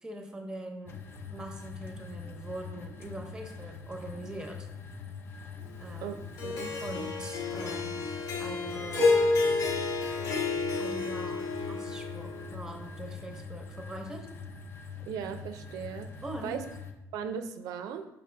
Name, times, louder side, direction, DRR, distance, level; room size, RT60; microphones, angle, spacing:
voice 1, 0.0-1.0 1.3-4.7 5.8-6.2 6.8-8.1 8.4-9.3 10.7-14.3 16.2-16.6, right 1 dB, 10° right, 4 dB, 0.8 m, -42 dB
sound 1, 0.9-16.9, left 5 dB, 40° left, 0.6 m, -44 dB
voice 2, 6.0-6.7 15.1-16.1 16.4-16.6 17.1-18.1, right 7 dB, 75° right, 9 dB, 0.4 m, -37 dB
Harp, 6.4-12.7, left 3 dB, 70° left, 1.3 m, -30 dB
5.9 x 5.0 x 3.3 m, 0.90 s
cardioid pair, 145°, 6 cm